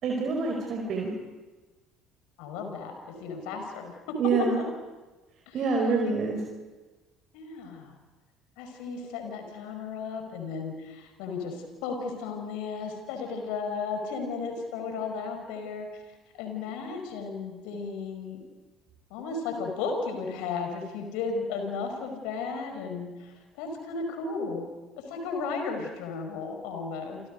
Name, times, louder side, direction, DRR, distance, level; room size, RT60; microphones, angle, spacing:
voice 1, 0.0-1.1 4.2-4.6 5.5-6.4, right 4 dB, 50° right, 0 dB, 5.1 m, -26 dB
voice 2, 2.4-4.1 5.5-5.6 6.0-6.1 7.3-8.0 8.6-15.9 16.4-18.4 19.1-24.7 25.1-27.2, left 4 dB, 65° left, 4 dB, 5.2 m, -34 dB
29.0 x 25.5 x 5.3 m, 1.2 s
figure-of-eight pair, 60°, 0 cm